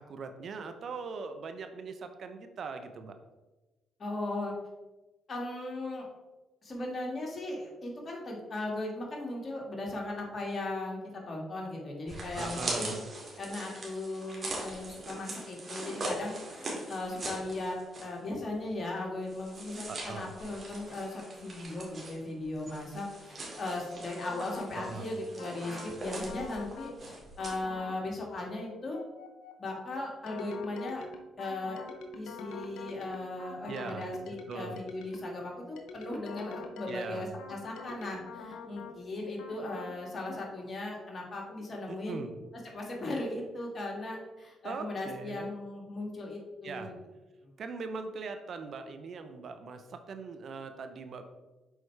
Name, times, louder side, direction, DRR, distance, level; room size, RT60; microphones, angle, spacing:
voice 1, 0.1-3.1 12.3-13.1 19.9-20.3 24.7-25.1 33.7-34.1 34.5-34.8 36.9-37.4 41.9-42.4 44.6-45.5 46.6-46.9 47.6-51.2, right 4 dB, 60° right, 8 dB, 0.6 m, -41 dB
voice 2, 4.0-4.5 5.3-6.1 6.6-13.0 13.4-17.8 18.0-29.0 29.6-31.1 31.4-31.8 32.2-42.2 42.6-46.9 47.4-47.5, left 2 dB, 40° left, -1 dB, 1.8 m, -37 dB
sound 1, 12.1-18.2 18.5-18.6 19.2-27.5, right 2 dB, 40° right, 2.0 m, -41 dB
sound 2, 24.3-25.0 25.4-26.0 26.3-27.0 27.4-28.0 28.3-35.4 35.8-39.0 39.4-40.0, left 3 dB, 80° left, 0.7 m, -45 dB
6.4 x 4.5 x 3.2 m, 1.1 s
supercardioid pair, 60°, 0 cm